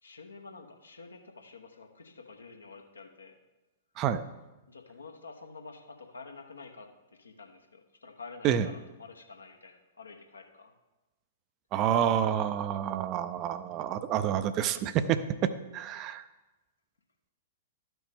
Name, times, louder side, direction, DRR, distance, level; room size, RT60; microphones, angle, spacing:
voice 1, 0.0-3.3 4.7-10.7, left 4 dB, 75° left, 4 dB, 1.0 m, -49 dB
voice 2, 11.7-16.2, right 9 dB, 30° right, 12 dB, 0.4 m, -28 dB
12.5 x 6.1 x 3.5 m, 1.1 s
figure-of-eight pair, 105°, 0 cm